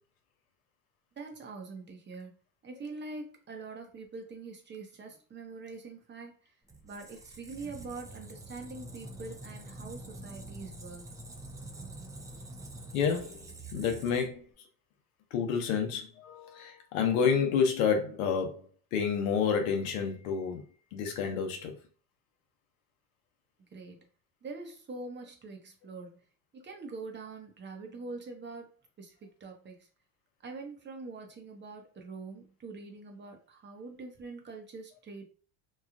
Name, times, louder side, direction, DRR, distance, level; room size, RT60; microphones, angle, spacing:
voice 1, 1.2-2.4 2.6-6.5 6.8-11.1 23.7-24.0 24.4-26.2 26.5-28.7 29.0-29.9 30.4-35.2, right 3 dB, 25° right, 0.7 m, -44 dB
Squeak, 6.7-14.5, right 2 dB, 10° right, 0.3 m, -46 dB
voice 2, 12.9-13.5 13.7-14.4 15.3-20.6 20.9-21.7, left 6 dB, 85° left, 0.8 m, -29 dB
3.1 x 2.3 x 2.4 m
supercardioid pair, 90°, 40 cm